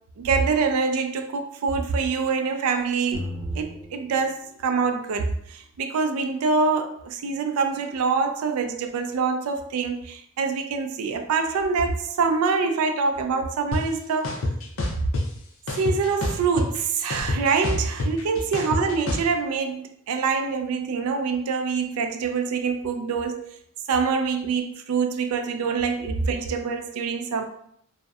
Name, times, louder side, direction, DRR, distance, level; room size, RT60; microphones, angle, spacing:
voice 1, 0.2-3.3 3.6-14.4 15.8-23.5 23.9-27.4, right 5 dB, 80° right, 0.3 m, -25 dB
sound 1, 3.1-4.9, left 1 dB, 45° right, 0.7 m, -37 dB
sound 2, 13.7-13.8 14.2-15.2 15.7-16.8 17.1-19.3, left 1 dB, 65° left, 0.5 m, -26 dB
2.6 x 2.0 x 2.3 m
head